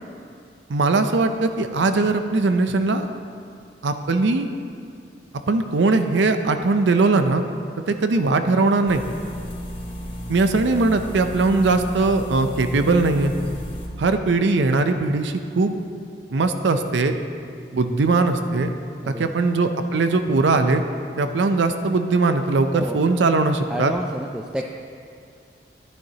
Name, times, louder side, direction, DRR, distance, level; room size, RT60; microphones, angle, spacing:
voice 1, 0.7-3.1 3.8-4.5 5.5-7.4 7.9-9.0 10.3-13.3 14.0-15.8 16.3-17.1 17.7-18.7 19.1-20.8 21.2-23.9, right 3 dB, 85° right, 8 dB, 0.5 m, -20 dB
sound 1, 8.9-13.9, equal, 30° left, 1.3 m, -33 dB
voice 2, 19.0-19.4 22.7-23.0 23.7-24.7, equal, 5° right, 1 dB, 0.3 m, -30 dB
12.0 x 10.5 x 2.9 m, 2.3 s
head